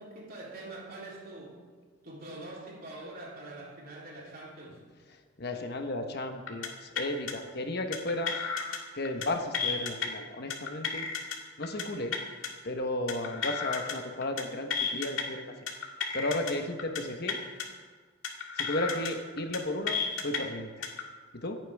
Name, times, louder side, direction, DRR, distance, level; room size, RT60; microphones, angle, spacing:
voice 1, 0.0-1.6 2.0-4.8, right 2 dB, 50° right, -4 dB, 3.5 m, -44 dB
voice 2, 5.4-8.4 8.9-11.1 11.6-12.1 12.6-15.5 16.1-17.4 18.6-20.9 21.3-21.6, left 1 dB, 55° left, 5 dB, 1.2 m, -34 dB
sound 1, 6.5-6.7 7.0-7.3 7.9-8.8 9.1-9.3 9.5-10.1 10.5-11.4 11.6-11.8 12.1-12.5 13.1-13.9 14.2-14.4 14.7-15.2 15.7-16.5 16.8-17.0 17.3-17.6 18.2-19.1 19.4-19.6 19.9-20.4 20.8-21.0, left 6 dB, 90° left, 2.0 m, -32 dB
26.5 x 8.9 x 3.6 m, 1.5 s
head